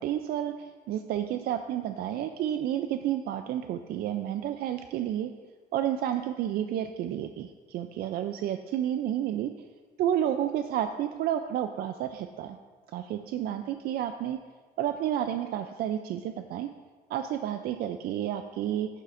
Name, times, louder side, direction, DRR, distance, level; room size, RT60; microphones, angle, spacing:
voice 1, 0.0-5.3 5.7-9.5 10.0-12.6 12.9-14.4 14.8-16.7 17.1-18.9, right 11 dB, 65° right, 8 dB, 0.4 m, -30 dB
11.5 x 8.4 x 2.5 m, 1.4 s
cardioid pair, 110°, 17 cm